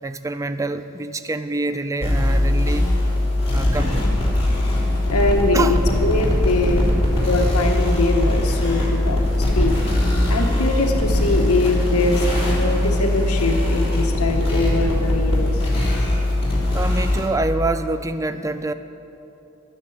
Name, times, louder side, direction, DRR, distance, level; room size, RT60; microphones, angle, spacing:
voice 1, 0.0-2.9 3.5-4.2 5.5-5.8 10.2-10.3 16.7-18.7, right 2 dB, 15° right, 10 dB, 0.4 m, -26 dB
sound 1, 2.0-17.2, left 1 dB, 25° left, 3.0 m, -20 dB
voice 2, 5.1-6.9 7.2-9.8 10.3-16.0, left 2 dB, 80° left, 3 dB, 1.2 m, -22 dB
11.0 x 9.8 x 7.1 m, 3.0 s
head